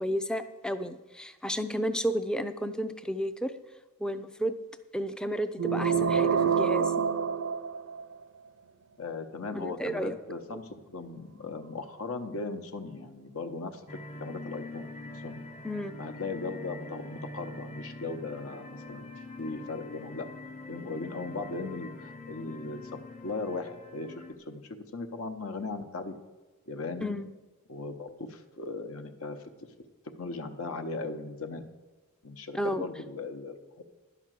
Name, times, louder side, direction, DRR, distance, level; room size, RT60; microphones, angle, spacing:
voice 1, 0.0-3.5 4.0-4.5 4.9-6.9 9.5-10.2 15.6-16.0 27.0-27.3 32.5-32.8, equal, 5° left, 10 dB, 0.4 m, -32 dB
sound 1, 5.6-8.2, right 6 dB, 60° right, 0.5 m, -27 dB
voice 2, 9.0-13.8 14.2-15.3 16.0-19.0 19.4-20.3 20.7-24.6 24.9-26.1 26.7-27.2 27.7-29.4 30.2-31.6 32.2-33.8, left 3 dB, 65° left, 7 dB, 0.9 m, -38 dB
sound 2, 13.9-24.3, left 2 dB, 30° left, 0.9 m, -44 dB
11.0 x 5.9 x 7.5 m, 1.2 s
head